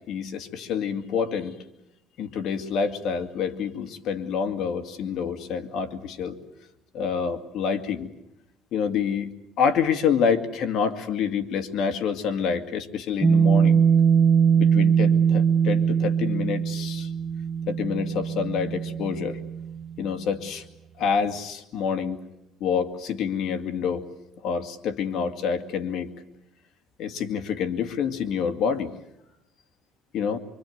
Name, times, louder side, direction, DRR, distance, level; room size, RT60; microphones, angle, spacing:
voice 1, 0.1-1.6 2.2-6.4 6.9-8.1 8.7-9.3 9.6-13.9 14.6-17.1 17.7-19.4 20.0-20.7 21.0-22.2 22.6-24.0 24.4-26.1 27.0-28.9 30.1-30.4, left 6 dB, 60° left, 7 dB, 2.3 m, -27 dB
sound 1, 13.2-19.9, right 7 dB, 15° right, 1.1 m, -21 dB
25.0 x 24.5 x 9.4 m, 0.85 s
cardioid pair, 120°, 0 cm